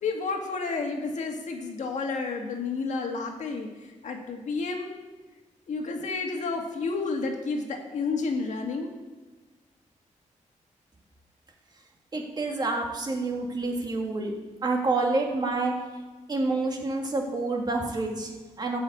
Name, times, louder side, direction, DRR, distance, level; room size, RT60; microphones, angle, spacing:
voice 1, 0.0-3.7 4.0-4.9 5.7-8.9, left 4 dB, 65° left, 2 dB, 1.8 m, -30 dB
voice 2, 12.1-14.4 14.6-15.7 16.3-18.8, right 3 dB, 30° right, 1 dB, 1.8 m, -28 dB
13.5 x 5.6 x 8.3 m, 1.3 s
wide cardioid pair, 140°, 13 cm